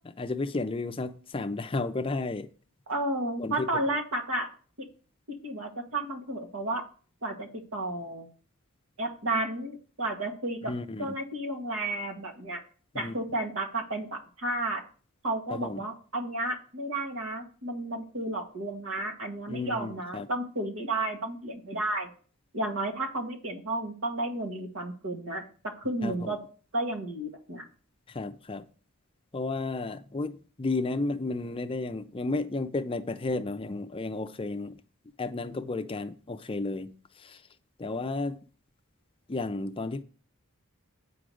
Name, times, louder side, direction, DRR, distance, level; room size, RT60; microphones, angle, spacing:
voice 1, 0.2-2.5 3.4-3.8 10.7-11.1 12.9-13.1 15.5-15.8 19.5-20.3 26.0-26.4 28.1-28.6 29.3-34.8 35.2-37.4 37.8-38.4 39.3-40.0, left 3 dB, 25° left, 0.5 m, -33 dB
voice 2, 2.9-4.5 5.4-6.8 7.2-8.3 9.0-10.7 11.0-12.6 13.0-14.8 15.2-22.1 22.5-26.4 26.7-27.6, right 2 dB, 70° right, 1.7 m, -32 dB
8.5 x 4.9 x 6.3 m
head